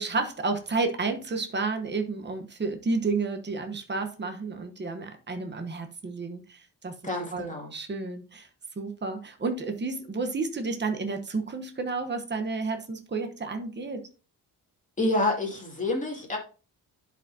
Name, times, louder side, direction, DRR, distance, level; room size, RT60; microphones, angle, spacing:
voice 1, 0.0-7.0 7.3-8.5 8.8-14.0, right 3 dB, 25° right, 5 dB, 1.1 m, -31 dB
voice 2, 7.0-7.7 15.0-16.4, left 2 dB, 20° left, -1 dB, 2.3 m, -28 dB
11.5 x 5.2 x 2.7 m, 0.36 s
wide cardioid pair, 145°, 40 cm